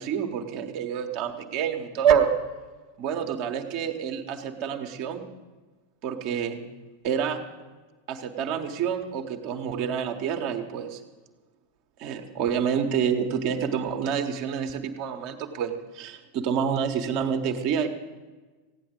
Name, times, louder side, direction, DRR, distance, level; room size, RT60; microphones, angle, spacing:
voice 1, 0.0-2.3 3.0-5.3 6.0-6.6 7.0-7.4 8.1-11.0 12.0-17.9, right 7 dB, 45° right, 4 dB, 1.2 m, -27 dB
16.0 x 9.7 x 6.5 m, 1.3 s
figure-of-eight pair, 90°, 0 cm